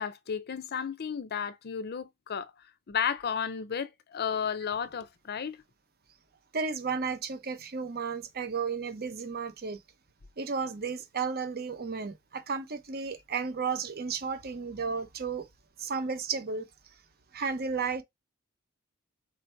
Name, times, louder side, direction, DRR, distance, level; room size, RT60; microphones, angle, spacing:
voice 1, 0.0-2.5 2.9-5.6, left 7 dB, 45° left, 0.5 m, -33 dB
voice 2, 6.5-9.8 10.4-15.5 15.8-16.7 17.3-18.0, right 5 dB, 45° right, 0.8 m, -33 dB
4.3 x 2.7 x 4.3 m
head